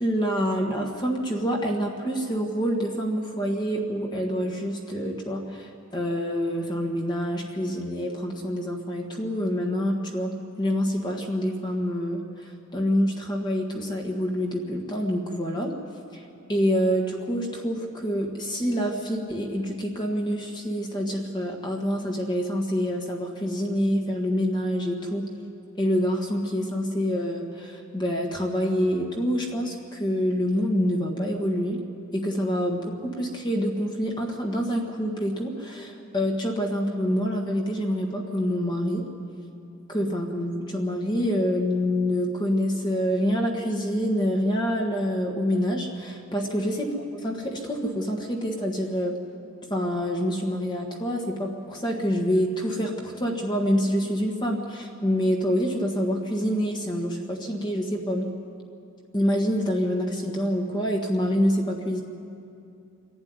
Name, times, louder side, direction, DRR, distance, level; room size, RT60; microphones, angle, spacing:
voice 1, 0.0-15.7 16.1-16.2 16.5-25.3 25.8-31.8 32.1-39.0 39.9-49.1 49.7-58.3 59.1-62.0, equal, 20° left, 0 dB, 1.5 m, -26 dB
27.0 x 11.5 x 9.7 m, 2.6 s
head